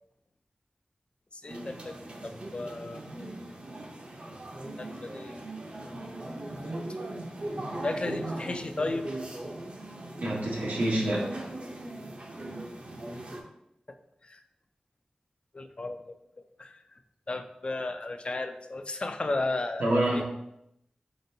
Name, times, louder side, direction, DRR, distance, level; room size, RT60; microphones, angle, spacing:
voice 1, 1.3-1.9 2.2-3.0 4.8-5.5 7.8-9.1 14.2-14.4 15.5-16.2 16.6-16.8 17.3-20.2, left 2 dB, 40° left, 7 dB, 0.4 m, -34 dB
sound 1, 1.5-13.4, right 1 dB, 45° right, 0.6 m, -39 dB
voice 2, 10.2-11.4 19.8-20.2, right 1 dB, 90° right, -3 dB, 1.0 m, -27 dB
4.4 x 3.9 x 2.7 m, 0.82 s
wide cardioid pair, 85°, 3 cm